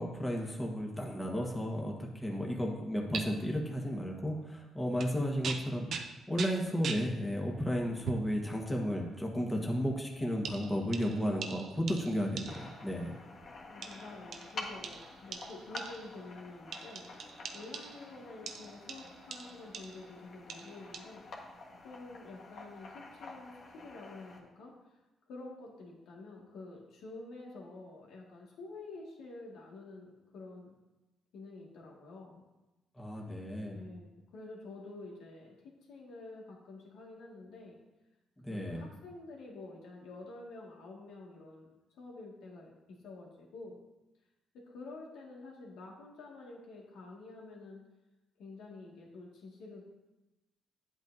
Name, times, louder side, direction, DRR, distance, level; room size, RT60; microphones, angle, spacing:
voice 1, 0.0-13.1 33.0-33.8 38.4-38.8, equal, 15° left, 0 dB, 1.4 m, -33 dB
sound 1, 3.1-3.2 4.9-5.1 5.4-7.1 8.0-8.3 9.1-9.3 10.4-12.8 13.8-16.2 16.7-18.1 18.5-20.1 20.5-21.0, right 6 dB, 65° right, 0.7 m, -42 dB
sound 2, 12.5-24.4, left 3 dB, 60° left, 1.4 m, -49 dB
voice 2, 13.7-17.1 17.5-21.3 21.8-24.7 25.3-30.7 31.3-32.4 33.7-35.5 35.9-37.8 38.5-41.7 42.0-43.8 44.7-47.8 48.4-49.8, left 3 dB, 85° left, -2 dB, 1.9 m, -49 dB
10.0 x 8.2 x 2.7 m, 1.0 s
cardioid pair, 90°, 0 cm